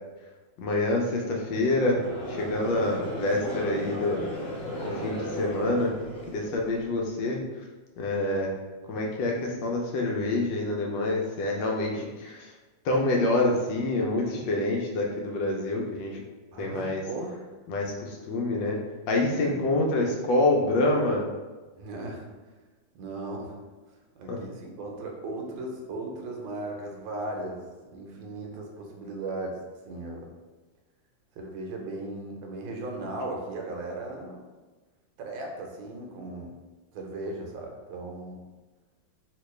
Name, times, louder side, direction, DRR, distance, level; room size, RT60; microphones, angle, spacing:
voice 1, 0.6-2.0 2.3-4.2 4.8-6.0 6.3-7.6 8.0-8.5 8.9-12.5 12.8-16.2 16.6-17.0 17.7-18.8 19.1-21.3 24.3-24.4, left 2 dB, 75° left, 0 dB, 1.2 m, -27 dB
Conversation / Crowd, 1.6-6.9, equal, 40° left, 1.0 m, -35 dB
voice 2, 3.4-3.8 16.5-17.5 19.4-19.8 21.8-22.3 22.9-23.6 24.2-29.6 29.9-30.3 31.4-34.4 35.2-36.6 36.9-38.4, right 2 dB, 75° right, 1 dB, 1.3 m, -37 dB
3.0 x 2.9 x 3.2 m, 1.3 s
omnidirectional pair, 2.2 m